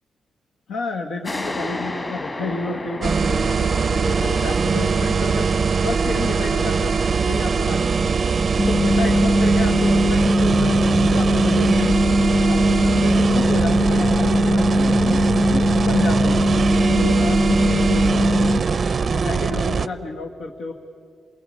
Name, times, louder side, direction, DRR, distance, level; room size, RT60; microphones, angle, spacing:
voice 1, 0.7-5.5 5.8-7.0 7.2-8.3 8.7-12.0 12.3-16.4 16.9-18.5 19.1-20.7, left 3 dB, 80° left, 2 dB, 1.7 m, -30 dB
sound 1, 1.2-8.4, left 2 dB, 25° left, 2.2 m, -34 dB
sound 2, 3.0-19.9, right 5 dB, 30° right, 0.5 m, -21 dB
sound 3, 8.6-18.6, equal, 10° left, 1.1 m, -19 dB
28.5 x 22.5 x 8.7 m, 2.4 s
wide cardioid pair, 175°, 0 cm